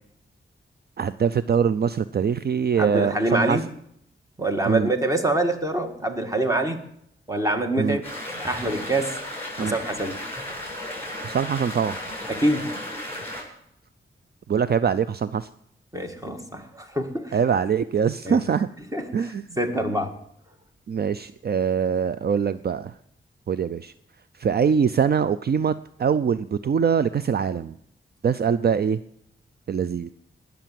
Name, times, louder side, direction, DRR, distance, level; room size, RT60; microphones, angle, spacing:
voice 1, 1.0-3.6 4.6-4.9 7.8-8.0 9.6-9.7 11.2-12.0 14.5-15.5 17.3-18.7 19.1-19.4 20.9-22.9 23.5-23.9 24.4-27.7 28.2-29.0 29.7-30.1, right 7 dB, 50° right, 14 dB, 0.5 m, -23 dB
voice 2, 2.8-3.6 4.4-6.8 7.3-8.0 8.4-9.1 9.6-10.2 12.3-12.7 15.9-17.4 18.2-18.4 18.9-20.1, right 1 dB, 15° right, 6 dB, 1.8 m, -25 dB
sound 1, 8.0-13.4, left 1 dB, 10° left, 7.7 m, -34 dB
19.5 x 6.9 x 7.6 m, 0.71 s
wide cardioid pair, 100°, 21 cm